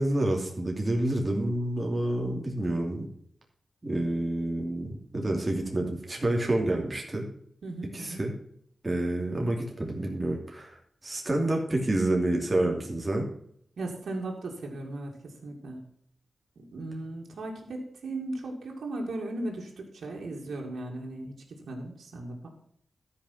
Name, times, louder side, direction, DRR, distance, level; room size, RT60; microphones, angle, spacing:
voice 1, 0.0-3.1 3.8-7.2 7.9-8.3 8.8-10.8 11.0-13.3, right 1 dB, 25° right, 0 dB, 2.7 m, -28 dB
voice 2, 7.6-8.2 13.8-15.8 16.6-22.5, right 2 dB, 85° right, -1 dB, 2.3 m, -37 dB
13.0 x 5.5 x 5.8 m, 0.67 s
wide cardioid pair, 90°, 0 cm